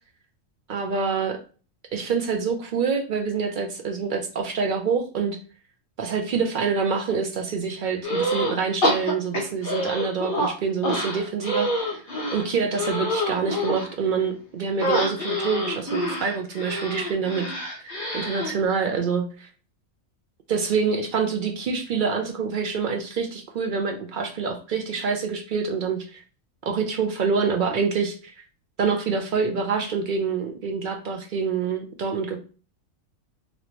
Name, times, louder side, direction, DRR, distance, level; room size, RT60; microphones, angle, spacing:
voice 1, 0.7-1.4 1.9-5.4 6.0-12.0 12.3-17.5 17.7-19.5 20.5-26.2 26.7-28.3 28.8-32.4, right 5 dB, 65° right, 4 dB, 0.5 m, -26 dB
sound 1, 8.0-8.6 8.8-10.5 10.8-13.9 14.8-18.5, equal, 45° left, 1.1 m, -26 dB
3.1 x 2.7 x 2.9 m, 0.37 s
omnidirectional pair, 1.4 m